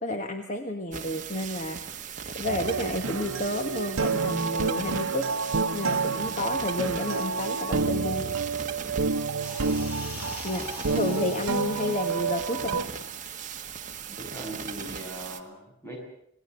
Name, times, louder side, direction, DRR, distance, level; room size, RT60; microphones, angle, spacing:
voice 1, 0.0-1.8 2.3-5.3 5.7-8.3 10.4-12.8, left 1 dB, 35° left, 6 dB, 1.4 m, -31 dB
sound 1, 0.9-15.4, right 7 dB, 35° right, 1.6 m, -38 dB
sound 2, 2.4-12.8, right 4 dB, 85° right, 0.8 m, -29 dB
sound 3, 9.4-14.5 14.7-14.9, left 3 dB, 85° left, 3.5 m, -44 dB
voice 2, 14.2-16.0, right 1 dB, 10° left, 0 dB, 7.8 m, -40 dB
26.5 x 18.0 x 7.9 m, 0.73 s
head